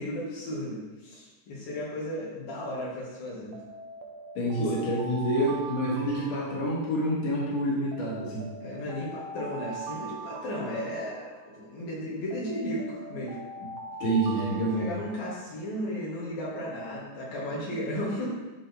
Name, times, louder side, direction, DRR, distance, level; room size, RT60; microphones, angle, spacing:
voice 1, 0.0-3.5 4.6-4.8 8.6-13.4 14.4-18.3, left 1 dB, 80° left, -7 dB, 3.7 m, -34 dB
Alarm, 3.5-7.2 7.9-11.6 12.3-15.5, right 3 dB, 90° right, 2.6 m, -42 dB
voice 2, 4.3-8.5 13.6-13.7 14.0-14.9, right 1 dB, 55° left, -6 dB, 2.8 m, -28 dB
11.0 x 4.3 x 3.5 m, 1.2 s
omnidirectional pair, 4.0 m